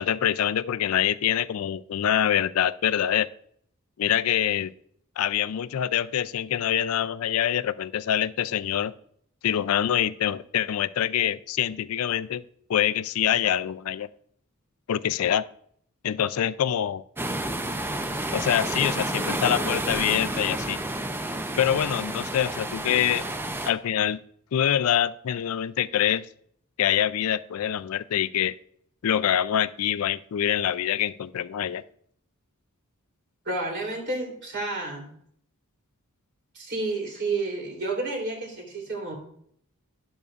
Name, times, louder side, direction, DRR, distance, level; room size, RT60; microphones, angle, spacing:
voice 1, 0.0-3.3 4.0-4.7 5.2-8.9 9.4-12.4 12.7-14.1 14.9-15.5 16.0-17.0 18.3-20.8 21.6-23.3 23.7-24.2 24.5-26.3 26.8-28.5 29.0-31.8, left 10 dB, 70° left, 16 dB, 0.4 m, -25 dB
sound 1, 17.2-23.7, right 1 dB, 10° right, 0.5 m, -30 dB
voice 2, 33.4-35.1 36.5-39.1, right 2 dB, 50° right, 0 dB, 3.3 m, -30 dB
12.0 x 10.5 x 2.5 m, 0.66 s
head